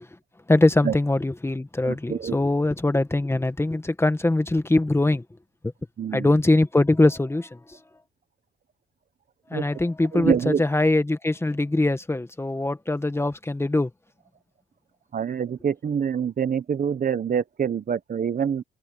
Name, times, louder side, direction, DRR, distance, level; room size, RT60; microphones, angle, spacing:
voice 1, 0.5-5.2 6.1-7.6 9.5-13.9, left 2 dB, 10° left, 1.6 m, -22 dB
voice 2, 1.8-2.4 6.0-6.3 9.5-9.6 10.1-10.6 15.1-18.6, right 7 dB, 45° right, 1.2 m, -26 dB
cardioid pair, 90°, 20 cm